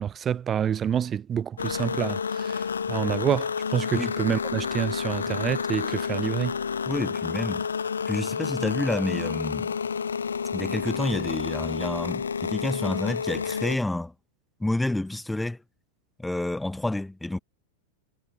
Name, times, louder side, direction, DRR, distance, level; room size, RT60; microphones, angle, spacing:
voice 1, 0.0-6.6, right 8 dB, 25° right, 0.6 m, -28 dB
sound 1, 1.6-13.8, left 6 dB, 70° left, 1.4 m, -30 dB
voice 2, 6.9-7.7 8.1-9.7 10.5-14.1 14.6-15.6 16.2-17.4, left 2 dB, 5° left, 1.3 m, -29 dB
figure-of-eight pair, 90°, 0 cm